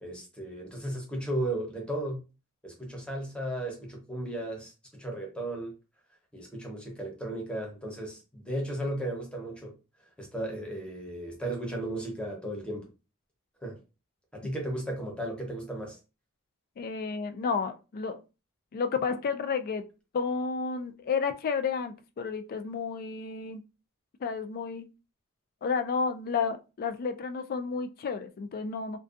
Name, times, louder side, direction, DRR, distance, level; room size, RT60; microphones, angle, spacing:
voice 1, 0.0-2.2 2.6-5.7 6.3-9.7 10.2-12.9 13.6-13.8 14.3-16.0, right 1 dB, 5° left, 0.7 m, -35 dB
voice 2, 16.8-18.2 18.7-19.8 20.1-23.6 24.2-24.9 25.6-29.0, left 5 dB, 45° left, 0.3 m, -31 dB
2.5 x 2.2 x 2.3 m
head